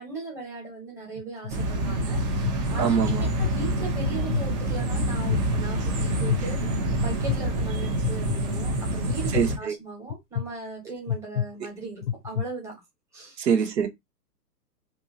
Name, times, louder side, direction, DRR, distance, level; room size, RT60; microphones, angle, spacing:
voice 1, 0.0-12.7 13.1-13.4, right 3 dB, 5° right, 1.0 m, -38 dB
sound 1, 1.2-1.5 2.1-2.5 3.1-3.5 4.0-4.5 5.0-5.4 6.0-6.4 7.0-7.4 8.0-8.4 9.1-9.4 10.1-10.4 11.1-11.4 12.0-12.4, left 9 dB, 50° left, 0.5 m, -28 dB
sound 2, 1.5-9.6, right 1 dB, 30° right, 0.5 m, -27 dB
voice 2, 2.8-3.3 9.3-9.8 13.4-13.9, right 7 dB, 80° right, 0.9 m, -24 dB
2.7 x 2.7 x 2.6 m
hypercardioid pair, 130°, 49 cm